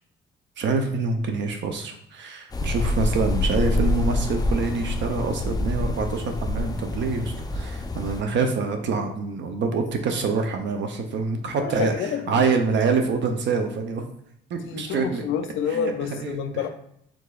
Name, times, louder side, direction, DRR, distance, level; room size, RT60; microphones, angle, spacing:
voice 1, 0.6-14.0 14.5-15.2 15.7-16.6, right 4 dB, 65° right, 5 dB, 0.6 m, -26 dB
sound 1, 2.5-8.2, left 2 dB, 20° left, 0.5 m, -26 dB
voice 2, 11.6-12.6 14.6-16.7, left 7 dB, 85° left, 8 dB, 0.5 m, -28 dB
4.7 x 3.9 x 2.3 m, 0.74 s
cardioid pair, 90°, 20 cm